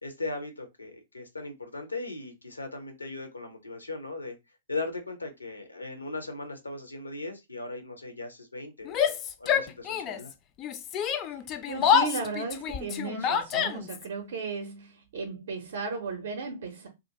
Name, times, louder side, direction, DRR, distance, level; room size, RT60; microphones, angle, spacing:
voice 1, 0.0-4.4 4.7-10.3, left 3 dB, 85° left, 0.6 m, -38 dB
Yell, 8.8-10.3 10.6-14.0, left 8 dB, 30° left, 0.3 m, -27 dB
voice 2, 11.6-16.9, right 4 dB, 60° right, 0.5 m, -35 dB
2.4 x 2.2 x 2.7 m
figure-of-eight pair, 105°, 0 cm